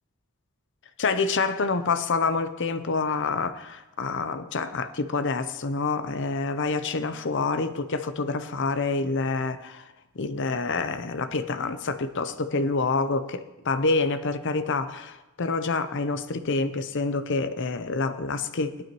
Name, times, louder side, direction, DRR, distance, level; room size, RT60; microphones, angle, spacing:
voice 1, 1.0-9.8 10.2-18.8, left 3 dB, 55° left, 10 dB, 0.7 m, -27 dB
18.0 x 12.0 x 3.0 m, 1.1 s
head